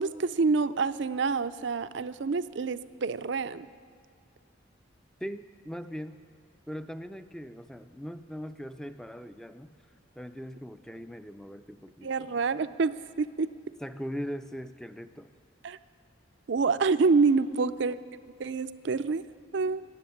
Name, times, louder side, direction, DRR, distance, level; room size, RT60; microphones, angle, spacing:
voice 1, 0.0-3.7 12.0-13.5 15.6-15.8 16.5-18.0 18.4-19.3 19.5-19.8, right 4 dB, 60° right, 14 dB, 0.4 m, -27 dB
voice 2, 5.2-6.2 6.7-9.7 10.2-12.6 13.8-15.3 17.5-17.8, equal, 5° left, 10 dB, 0.4 m, -40 dB
17.5 x 7.7 x 9.9 m, 2.1 s
head